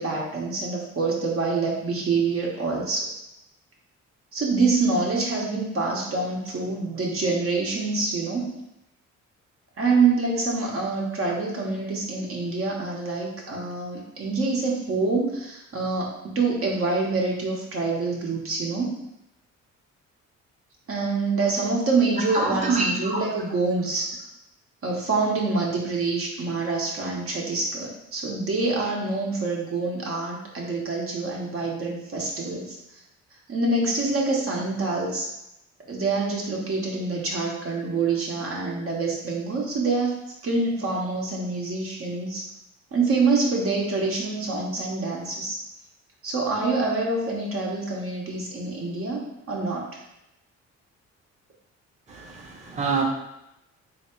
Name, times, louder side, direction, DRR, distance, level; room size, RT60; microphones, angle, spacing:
voice 1, 0.0-3.1 4.3-8.5 9.8-19.0 20.9-24.1 24.8-32.8 33.5-35.3 35.9-40.1 40.4-42.5 42.9-45.6 46.2-50.0, right 3 dB, 50° right, -2 dB, 1.0 m, -26 dB
voice 2, 22.3-23.2 52.1-53.0, right 3 dB, 25° right, -3 dB, 0.9 m, -26 dB
3.4 x 2.8 x 4.4 m, 0.86 s
cardioid pair, 90°, 30 cm